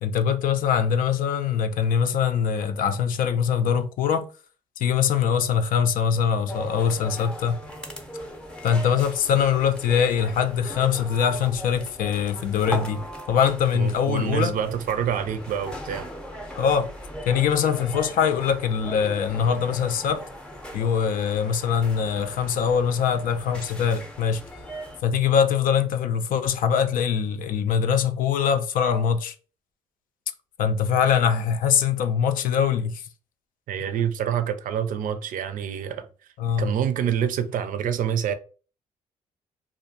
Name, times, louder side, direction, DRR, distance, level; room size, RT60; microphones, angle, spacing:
voice 1, 0.0-4.3 4.8-7.6 8.6-14.6 16.5-16.9 17.3-20.3 20.7-24.4 25.0-29.4 30.6-33.0 36.4-36.7, left 7 dB, 65° left, 0.4 m, -23 dB
sound 1, 6.5-25.0, equal, 5° left, 0.6 m, -38 dB
voice 2, 13.7-16.1 33.7-36.1 36.6-38.3, right 8 dB, 65° right, 0.4 m, -26 dB
2.4 x 2.1 x 2.7 m
supercardioid pair, 60°, 15 cm